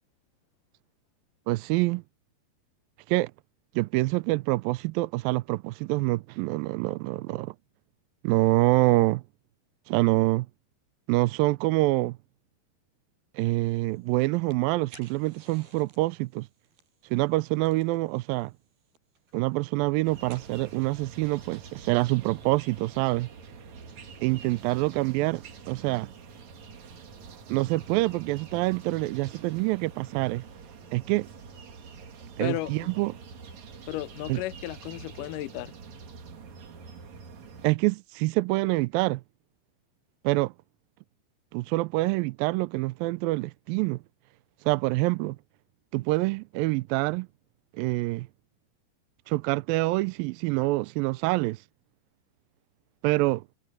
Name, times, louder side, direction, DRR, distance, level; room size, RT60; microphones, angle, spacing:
voice 1, 1.5-2.0 3.1-3.3 3.8-7.6 8.2-9.2 9.9-10.5 11.1-12.2 13.4-16.5 17.1-18.5 19.3-23.3 24.2-26.1 27.5-30.4 30.9-31.3 32.4-33.1 34.3-34.4 37.6-39.2 40.2-40.5 41.5-44.0 44.7-45.4 45.9-47.3 47.7-48.3 49.3-51.6 53.0-53.4, right 21 dB, 85° right, 2.1 m, -26 dB
sound 1, 13.7-26.2, right 5 dB, 70° right, 6.7 m, -60 dB
sound 2, 20.0-37.7, right 5 dB, 50° right, 3.2 m, -46 dB
voice 2, 32.4-32.9 33.9-35.7, left 18 dB, 80° left, 1.9 m, -34 dB
omnidirectional pair, 4.7 m